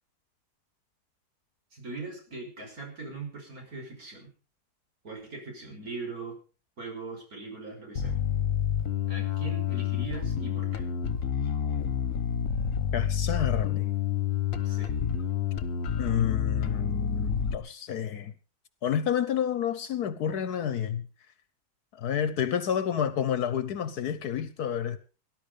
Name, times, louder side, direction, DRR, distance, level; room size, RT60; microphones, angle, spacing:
voice 1, 1.7-4.3 5.0-6.4 6.8-8.2 9.1-10.9 14.6-14.9, right 3 dB, 65° right, 6.2 m, -40 dB
Bass guitar, 8.0-17.6, left 8 dB, 55° left, 1.6 m, -29 dB
voice 2, 12.9-13.9 16.0-18.3 18.8-21.1 22.0-25.0, left 9 dB, 75° left, 1.5 m, -29 dB
19.0 x 11.5 x 5.2 m
omnidirectional pair, 1.7 m